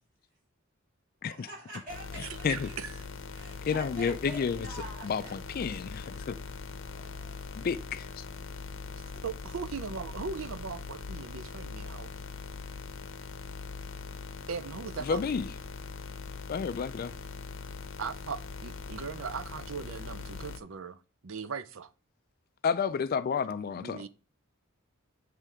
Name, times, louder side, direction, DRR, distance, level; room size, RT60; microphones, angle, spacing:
voice 1, 1.3-2.8 3.3-5.3 6.1-6.3 6.9-7.7, right 1 dB, 45° right, 3.0 m, -46 dB
sound 1, 1.9-20.6, left 4 dB, 65° left, 0.7 m, -41 dB
voice 2, 2.5-2.9 9.1-12.1 14.5-15.2 18.0-21.9 23.8-24.1, right 5 dB, 70° right, 0.6 m, -39 dB
voice 3, 3.6-4.7 5.0-6.4 7.6-8.2 15.0-15.5 16.5-17.1 22.6-24.0, left 6 dB, 45° left, 0.3 m, -31 dB
9.1 x 3.3 x 4.8 m
head